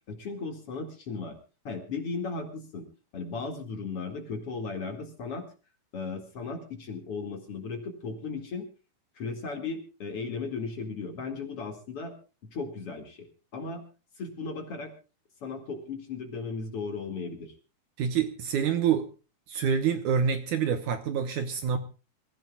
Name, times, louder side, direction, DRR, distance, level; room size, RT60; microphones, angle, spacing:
voice 1, 0.1-1.4 1.6-2.9 3.1-5.5 5.9-8.7 9.2-12.1 12.5-13.3 13.5-13.9 14.2-14.9 15.4-17.5, left 4 dB, 45° left, 6 dB, 2.7 m, -36 dB
voice 2, 18.0-19.1 19.5-21.8, right 7 dB, 65° right, 9 dB, 2.2 m, -27 dB
27.0 x 15.0 x 2.3 m, 0.33 s
omnidirectional pair, 4.3 m